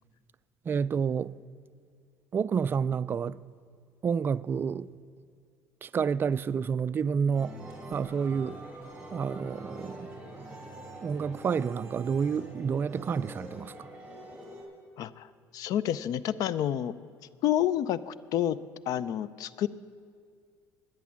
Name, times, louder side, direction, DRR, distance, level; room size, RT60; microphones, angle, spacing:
voice 1, 0.7-1.3 2.3-3.4 4.0-4.9 5.8-7.6 7.9-8.6 9.1-10.5 11.0-13.9, right 6 dB, 30° right, 0.3 m, -29 dB
sound 1, 7.3-14.6, right 1 dB, 15° right, 3.8 m, -44 dB
voice 2, 15.0-17.0 17.4-18.6 18.9-19.7, left 11 dB, 60° left, 0.5 m, -29 dB
12.0 x 10.5 x 7.4 m
cardioid pair, 105°, 7 cm